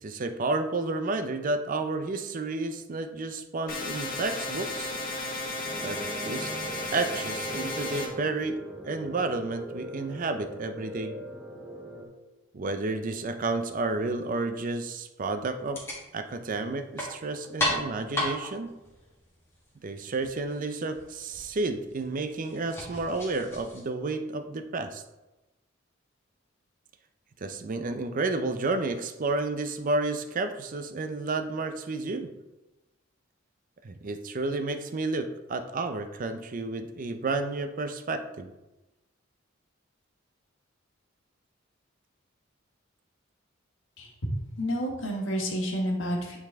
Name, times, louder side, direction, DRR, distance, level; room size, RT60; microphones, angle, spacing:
voice 1, 0.0-4.9 5.8-6.5 6.9-11.1 12.5-18.7 19.8-25.0 27.4-32.3 33.8-38.5, right 3 dB, 40° right, 8 dB, 0.5 m, -31 dB
sound 1, 3.7-8.1, left 2 dB, 45° left, 1.3 m, -34 dB
sound 2, 5.6-12.1, right 1 dB, 10° right, 1.4 m, -40 dB
sound 3, 15.6-23.8, left 1 dB, 15° left, 1.6 m, -36 dB
voice 2, 44.6-46.4, equal, 70° left, 0 dB, 1.5 m, -29 dB
9.1 x 4.0 x 3.5 m, 1.0 s
head